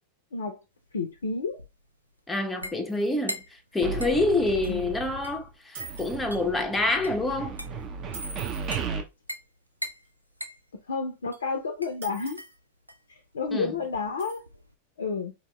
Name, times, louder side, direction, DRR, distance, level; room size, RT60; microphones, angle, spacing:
sound 1, 0.8-14.7, equal, 90° right, 0.3 m, -43 dB
voice 1, 0.9-1.6 4.7-4.8 10.9-12.4 13.1-14.4 15.0-15.3, left 4 dB, 70° left, 0.5 m, -30 dB
voice 2, 2.3-7.6 13.5-13.7, left 2 dB, 10° left, 0.5 m, -27 dB
sound 2, 2.9-3.1 4.7-4.8 5.7-6.2 8.1-8.9 12.0-12.5 14.2-14.4, right 4 dB, 65° right, 1.6 m, -43 dB
sound 3, 3.8-5.5 5.8-9.0, right 5 dB, 30° right, 0.6 m, -35 dB
3.8 x 2.7 x 2.2 m
figure-of-eight pair, 90°, 0 cm